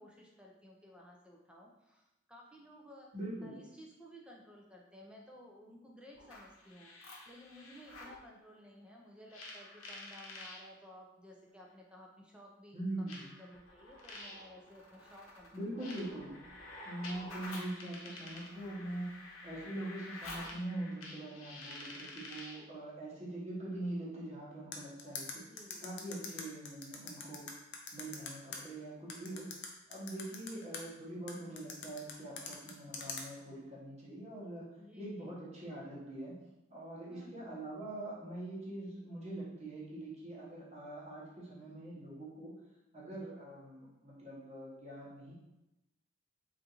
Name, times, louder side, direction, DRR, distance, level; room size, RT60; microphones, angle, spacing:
voice 1, 0.0-3.1 3.4-16.6 25.4-26.4 30.4-30.8 34.7-35.4 37.1-37.4, equal, 5° right, -1 dB, 0.4 m, -56 dB
voice 2, 3.1-3.5 12.7-13.3 15.5-16.3 16.8-19.1 19.4-25.4 25.8-27.4 27.9-29.5 29.9-34.7 35.0-36.4 36.7-42.5 42.9-45.3, right 1 dB, 35° right, -6 dB, 1.0 m, -43 dB
sound 1, 6.2-8.2 9.3-10.6 11.7-11.8 13.1-22.7, left 2 dB, 90° left, 0.7 m, -49 dB
sound 2, 24.7-28.6 29.1-30.8 31.3-33.2, left 5 dB, 55° left, 0.5 m, -43 dB
3.5 x 2.5 x 2.9 m, 0.95 s
head